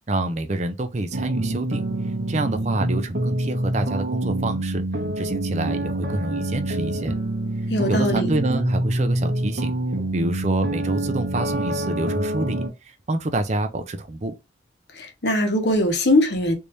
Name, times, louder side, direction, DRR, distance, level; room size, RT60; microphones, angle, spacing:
voice 1, 0.1-1.8 2.3-4.8 5.2-7.1 7.9-9.7 10.1-14.3, right 2 dB, 40° right, 0.5 m, -27 dB
sound 1, 1.1-12.7, right 1 dB, 55° right, 0.9 m, -26 dB
voice 2, 7.7-8.3 15.0-16.5, left 1 dB, 65° left, 1.0 m, -21 dB
3.4 x 2.7 x 3.0 m
head